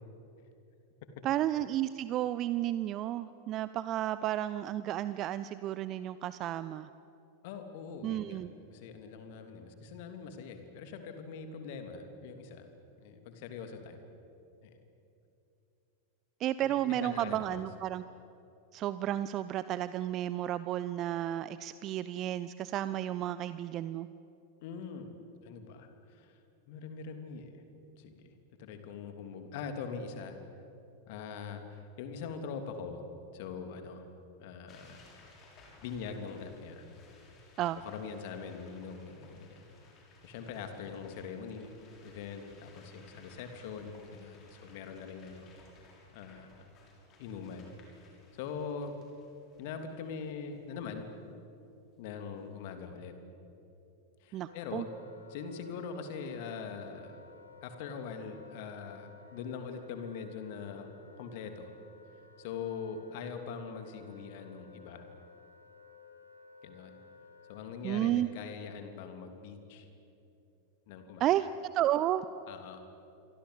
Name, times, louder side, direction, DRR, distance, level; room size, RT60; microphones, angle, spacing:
voice 1, 1.2-6.9 8.0-8.5 16.4-18.0 18.7-24.1 37.6-37.8 54.3-54.9 67.8-68.3 71.2-71.5 71.7-72.3, right 13 dB, 35° right, 15 dB, 0.6 m, -32 dB
voice 2, 7.4-8.4 8.7-12.7 13.0-14.0 14.6-14.8 16.6-17.6 24.6-25.1 25.4-26.4 26.7-27.6 28.0-28.3 28.6-30.4 31.1-33.0 33.3-34.1 34.4-35.0 35.8-36.8 37.7-39.6 40.2-41.7 42.0-45.5 46.1-46.6 47.2-47.7 48.3-48.9 49.6-51.1 52.0-53.1 54.2-54.9 55.3-57.2 57.6-61.7 62.4-65.1 66.6-66.9 67.5-69.9 70.9-71.2 72.5-72.8, left 6 dB, 50° left, 6 dB, 3.1 m, -42 dB
sound 1, 34.7-50.6, left 2 dB, 30° left, 6.5 m, -59 dB
Wind instrument woodwind instrument, 54.4-67.8, left 3 dB, 80° left, 2.9 m, -56 dB
28.0 x 24.0 x 8.3 m, 2.8 s
figure-of-eight pair, 90°, 0 cm